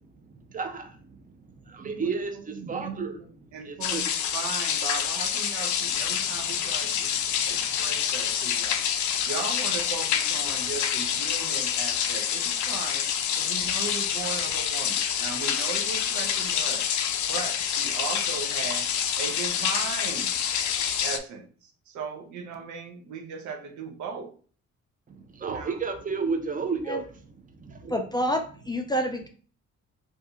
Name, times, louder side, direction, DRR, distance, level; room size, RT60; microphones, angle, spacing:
voice 1, 0.5-1.2 1.7-4.0 7.4-7.6 25.1-27.0 27.6-27.9, right 5 dB, 25° right, 5 dB, 0.7 m, -32 dB
voice 2, 1.8-7.1 7.5-8.8 9.3-13.1 13.4-16.8 17.3-18.9 19.2-20.3 21.0-24.3 25.5-25.8, right 5 dB, 75° right, 5 dB, 0.7 m, -37 dB
sound 1, 3.8-21.2, left 8 dB, 75° left, 0.5 m, -27 dB
voice 3, 27.9-29.3, equal, 15° left, 4 dB, 0.4 m, -28 dB
2.6 x 2.4 x 3.7 m, 0.42 s
cardioid pair, 90°, 30 cm